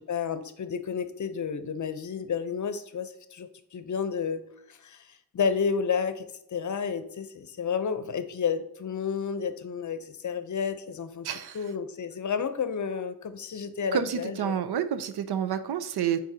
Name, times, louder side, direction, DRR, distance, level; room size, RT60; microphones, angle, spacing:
voice 1, 0.0-4.4 4.7-11.3 11.5-14.6, left 6 dB, 50° left, 11 dB, 0.7 m, -31 dB
voice 2, 11.2-11.6 13.9-16.2, right 9 dB, 80° right, 11 dB, 0.7 m, -29 dB
8.8 x 4.1 x 2.7 m, 0.79 s
cardioid pair, 75°, 38 cm